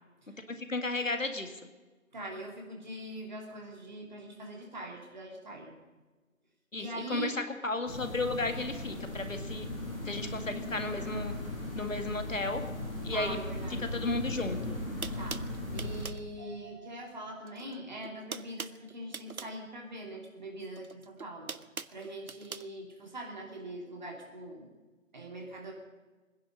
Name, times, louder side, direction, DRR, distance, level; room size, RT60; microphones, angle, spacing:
voice 1, 0.7-1.5 6.7-7.3 7.6-9.7 10.1-11.3 11.8-12.6 13.0-13.4 13.9-14.8, left 2 dB, 65° left, 7 dB, 2.0 m, -33 dB
voice 2, 2.1-5.7 6.8-7.4 12.9-13.9 15.2-15.5 15.7-21.5 21.9-24.7 25.1-25.7, right 1 dB, 35° right, 0 dB, 2.9 m, -42 dB
sound 1, 7.9-16.1, left 1 dB, 40° left, 5.9 m, -38 dB
sound 2, 14.5-14.6 15.0-16.3 17.4-17.8 18.0-19.6 20.7-22.7, right 5 dB, 85° right, 0.8 m, -42 dB
sound 3, 16.4-20.1 20.4-20.5, right 6 dB, 10° left, 2.6 m, -57 dB
21.0 x 10.5 x 6.4 m, 1.3 s
figure-of-eight pair, 160°, 41 cm